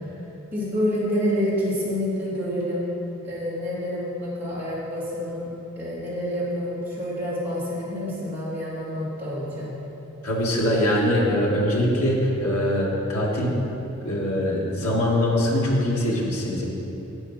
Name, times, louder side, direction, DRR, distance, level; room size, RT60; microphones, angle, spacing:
voice 1, 0.5-2.9 3.2-5.5 5.8-9.7, equal, 10° right, -9 dB, 2.8 m, -28 dB
voice 2, 10.2-13.5 14.0-16.7, left 1 dB, 90° left, -3 dB, 2.1 m, -22 dB
9.1 x 8.4 x 6.0 m, 3.0 s
head